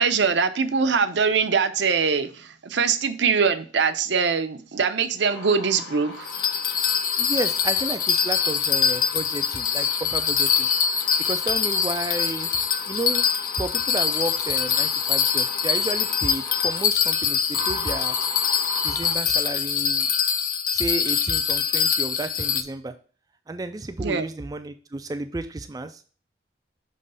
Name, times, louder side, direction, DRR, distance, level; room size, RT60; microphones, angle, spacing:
voice 1, 0.0-6.3 24.0-24.3, right 5 dB, 75° right, 9 dB, 0.6 m, -22 dB
sound 1, 5.3-19.1, left 2 dB, 75° left, 1.4 m, -39 dB
Bell, 6.3-22.6, left 7 dB, 45° left, 0.5 m, -24 dB
voice 2, 7.2-10.7 11.2-12.5 12.9-13.3 13.5-18.2 18.8-20.1 20.7-22.9 23.5-26.0, right 2 dB, 20° right, 8 dB, 0.3 m, -32 dB
6.6 x 3.1 x 5.4 m, 0.39 s
head